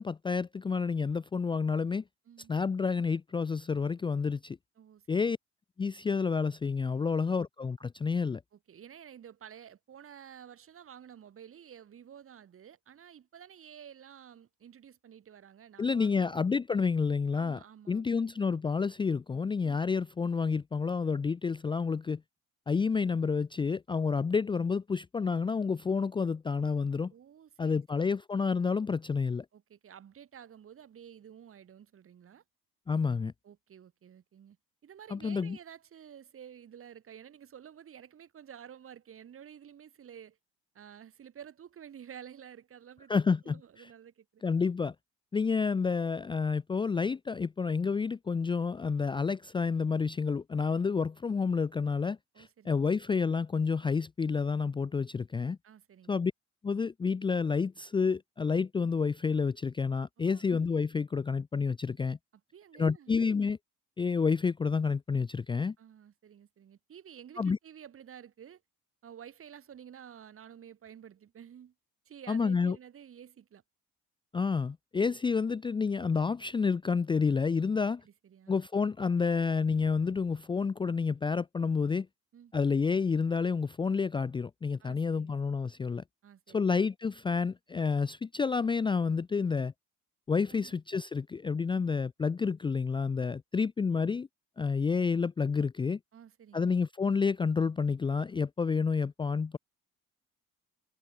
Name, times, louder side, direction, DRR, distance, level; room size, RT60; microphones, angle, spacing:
voice 1, 0.0-2.0 2.5-4.6 5.1-5.4 5.8-8.4 15.8-17.6 17.9-22.2 22.7-27.1 27.6-29.5 32.9-33.3 35.1-35.6 43.1-43.9 44.4-44.9 45.3-55.6 56.1-56.3 56.6-62.2 62.8-63.6 64.0-65.7 67.4-67.6 72.3-72.8 74.3-78.0 78.5-82.1 82.5-86.0 86.5-89.7 90.3-94.3 94.6-96.0 96.5-99.6, left 5 dB, 15° left, 0.4 m, -29 dB
voice 2, 2.3-2.6 4.8-5.2 6.9-7.1 8.5-16.4 17.3-18.2 24.1-24.3 27.1-28.2 29.5-32.4 33.4-34.6 34.8-40.4 40.7-43.1 43.4-44.4 52.3-52.8 55.6-56.2 60.2-60.5 62.5-63.1 65.8-68.6 69.0-71.7 72.1-73.6 77.7-78.6 82.3-82.5 84.8-85.3 86.2-86.7 90.5-90.7 96.1-96.8, right 9 dB, 45° right, 7.6 m, -51 dB
cardioid pair, 105°, 29 cm